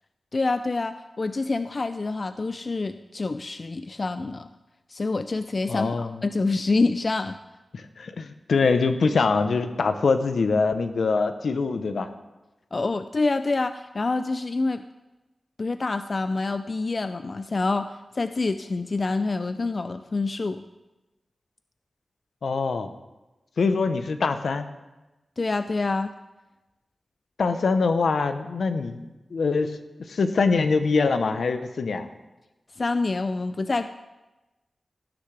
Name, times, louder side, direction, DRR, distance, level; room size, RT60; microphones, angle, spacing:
voice 1, 0.3-4.5 4.9-7.4 12.7-14.8 15.6-20.6 25.4-26.1 32.8-33.9, left 3 dB, 45° left, 10 dB, 0.4 m, -27 dB
voice 2, 5.7-6.2 7.7-12.1 22.4-22.9 23.6-24.7 27.4-29.1 29.3-29.8 30.1-32.1, left 4 dB, 80° left, 9 dB, 0.8 m, -24 dB
17.5 x 10.0 x 3.3 m, 1.1 s
wide cardioid pair, 85°, 0 cm